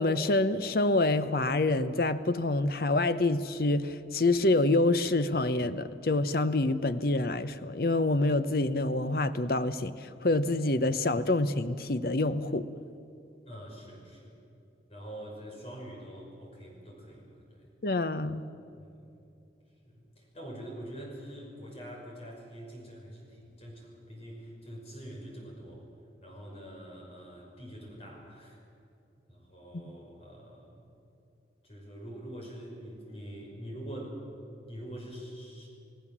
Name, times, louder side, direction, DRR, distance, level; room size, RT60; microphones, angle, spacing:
voice 1, 0.0-12.7 17.8-18.5, left 2 dB, 55° left, 12 dB, 0.8 m, -27 dB
voice 2, 13.4-14.4 14.9-17.7 18.6-19.2 19.8-25.9 26.2-28.6 29.3-31.0 31.6-34.2 34.7-35.7, right 1 dB, 35° left, -1 dB, 5.9 m, -45 dB
28.5 x 17.5 x 7.4 m, 2.7 s
head